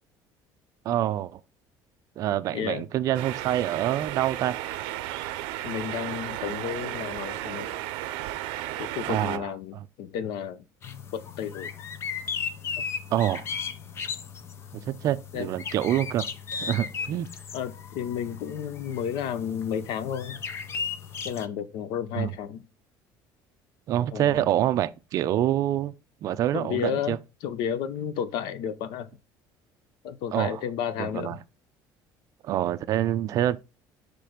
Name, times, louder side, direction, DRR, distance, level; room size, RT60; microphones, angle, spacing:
voice 1, 0.8-1.4 2.2-4.6 9.0-9.5 13.1-13.4 14.7-16.3 16.6-17.3 22.2-22.3 23.9-25.9 26.2-27.2 30.3-30.6 31.0-31.4 32.4-33.6, right 12 dB, 45° right, 0.5 m, -26 dB
voice 2, 2.5-2.9 5.6-7.7 8.8-10.6 11.1-11.7 12.8-12.9 15.3-15.5 17.5-20.4 21.2-22.6 24.1-24.5 26.5-29.1 30.0-31.4, left 8 dB, 70° left, 0.7 m, -32 dB
sound 1, 3.1-9.4, right 14 dB, 90° right, 0.5 m, -34 dB
sound 2, 10.8-21.5, left 6 dB, 30° left, 0.6 m, -36 dB
6.1 x 3.3 x 5.0 m
cardioid pair, 165°, 8 cm